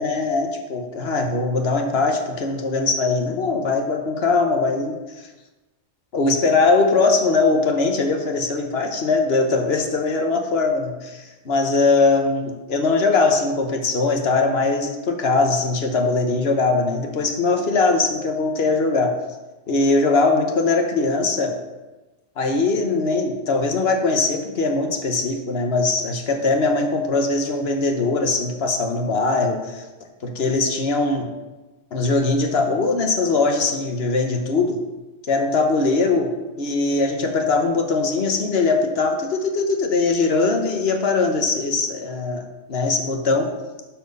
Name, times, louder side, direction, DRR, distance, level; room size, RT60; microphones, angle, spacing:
voice 1, 0.0-4.9 6.1-19.1 19.7-21.5 22.4-29.8 30.2-31.3 31.9-34.8 35.3-36.3 36.6-43.5, left 3 dB, 55° left, 4 dB, 1.3 m, -21 dB
11.5 x 4.6 x 5.3 m, 1.1 s
omnidirectional pair, 1.3 m